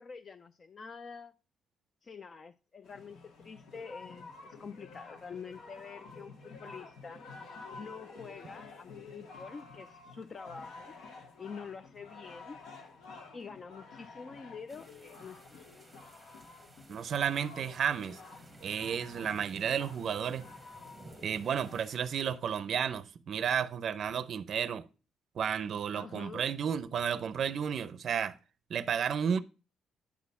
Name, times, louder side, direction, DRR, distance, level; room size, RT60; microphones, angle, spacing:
voice 1, 0.0-1.3 2.0-7.3 7.8-10.9 11.4-12.6 13.3-15.7 25.9-26.5, left 5 dB, 35° left, 0.4 m, -46 dB
sound 1, 2.8-22.4, left 4 dB, 75° left, 1.8 m, -51 dB
sound 2, 14.7-22.0, right 2 dB, 10° right, 0.9 m, -55 dB
voice 2, 16.9-18.2 18.6-20.4 21.2-24.9 25.4-28.4 28.7-29.4, right 8 dB, 50° right, 0.5 m, -32 dB
10.0 x 4.2 x 5.4 m
cardioid pair, 125°, 0 cm